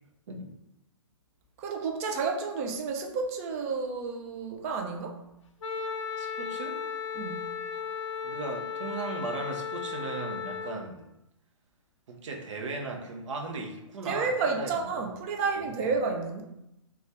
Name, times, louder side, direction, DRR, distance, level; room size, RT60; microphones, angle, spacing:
voice 1, 1.6-5.2 7.1-7.5 14.1-16.4, right 4 dB, 25° right, 2 dB, 0.4 m, -31 dB
Wind instrument woodwind instrument, 5.6-10.8, left 6 dB, 65° left, 0.5 m, -35 dB
voice 2, 6.2-6.8 8.2-11.1 12.1-15.1 15.6-15.9, right 3 dB, 65° right, 1 dB, 0.7 m, -37 dB
2.6 x 2.4 x 3.3 m, 0.86 s
hypercardioid pair, 145°, 17 cm